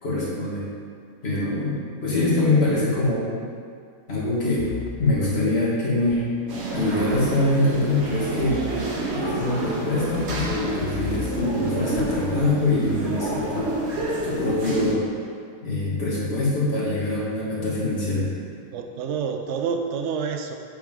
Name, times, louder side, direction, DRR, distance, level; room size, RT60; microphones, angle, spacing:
voice 1, 0.0-0.7 1.2-3.3 4.1-4.7 5.0-6.3 6.7-8.6 9.1-13.7 14.2-15.0 15.6-18.3, left 2 dB, 40° left, -7 dB, 2.0 m, -24 dB
sound 1, 4.6-5.1 6.1-6.2 8.4-8.9 9.3-9.6 10.0-10.5 10.8-11.5 12.0-12.4, left 9 dB, 85° left, 1.2 m, -34 dB
sound 2, 6.5-14.9, right 2 dB, 45° right, 1.2 m, -29 dB
voice 2, 18.7-20.5, right 6 dB, 65° right, 4 dB, 0.7 m, -28 dB
8.1 x 6.9 x 3.7 m, 2.2 s
omnidirectional pair, 1.7 m